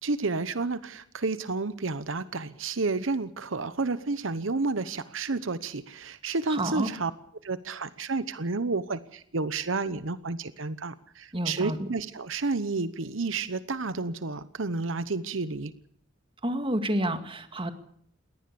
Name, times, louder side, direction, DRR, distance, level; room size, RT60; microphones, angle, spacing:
voice 1, 0.0-7.1 7.4-15.7, right 3 dB, 75° right, 14 dB, 1.0 m, -31 dB
voice 2, 6.5-6.9 11.3-11.9 16.4-17.7, right 1 dB, 25° right, 8 dB, 2.2 m, -29 dB
21.5 x 18.5 x 6.9 m, 0.65 s
head